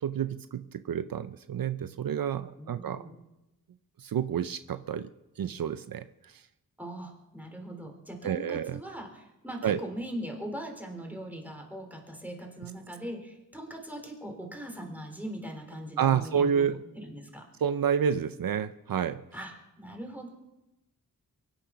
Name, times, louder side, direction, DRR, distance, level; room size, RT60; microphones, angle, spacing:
voice 1, 0.0-3.0 4.0-5.1 5.4-6.0 8.2-8.8 9.6-9.8 16.0-16.8 17.6-19.2, right 8 dB, 70° right, 12 dB, 0.6 m, -29 dB
voice 2, 2.6-3.2 6.8-16.6 16.9-17.5 19.3-19.5 19.8-20.3, right 1 dB, 5° right, 2 dB, 3.8 m, -40 dB
23.5 x 10.5 x 5.8 m, 0.95 s
wide cardioid pair, 90°, 35 cm